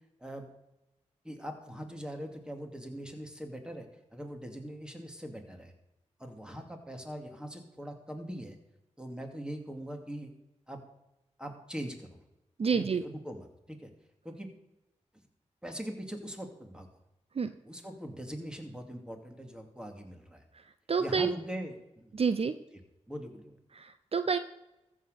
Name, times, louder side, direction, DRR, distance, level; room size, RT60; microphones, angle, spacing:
voice 1, 1.2-3.9 4.1-5.7 6.2-8.6 9.0-10.3 10.7-10.8 11.4-12.2 12.7-13.9 14.2-14.5 15.6-16.9 17.7-20.4 21.0-22.1 23.1-23.6, equal, 5° right, 4 dB, 2.5 m, -41 dB
voice 2, 12.6-13.0 17.3-17.5 20.5-21.3 22.1-22.6 23.7-24.4, right 5 dB, 55° right, 11 dB, 0.6 m, -29 dB
14.5 x 6.3 x 6.7 m, 0.93 s
cardioid pair, 55°, 12 cm